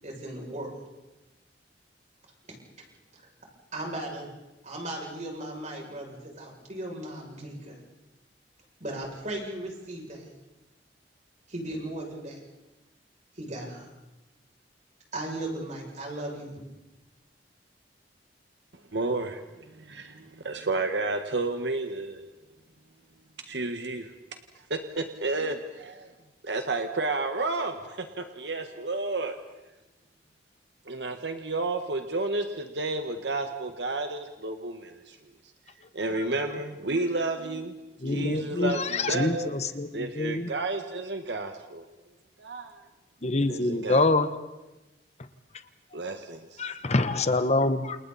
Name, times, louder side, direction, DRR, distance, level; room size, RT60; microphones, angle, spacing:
voice 1, 0.0-0.8 3.1-3.3 3.7-4.3 4.6-7.8 8.8-10.3 11.5-12.4 13.4-13.9 15.1-16.6, right 1 dB, 45° right, -1 dB, 7.1 m, -37 dB
voice 2, 18.9-22.2 23.5-24.1 24.7-26.1 26.4-29.3 30.9-35.2 35.9-37.7 38.0-39.5 39.9-41.9 42.4-42.7 43.4-44.1 45.9-46.7, right 2 dB, 80° right, 6 dB, 1.6 m, -31 dB
voice 3, 38.0-39.3 39.8-39.9 40.2-40.5 43.2-44.3 46.6-48.0, left 2 dB, 40° left, 10 dB, 1.1 m, -25 dB
29.0 x 28.5 x 4.3 m, 1.1 s
head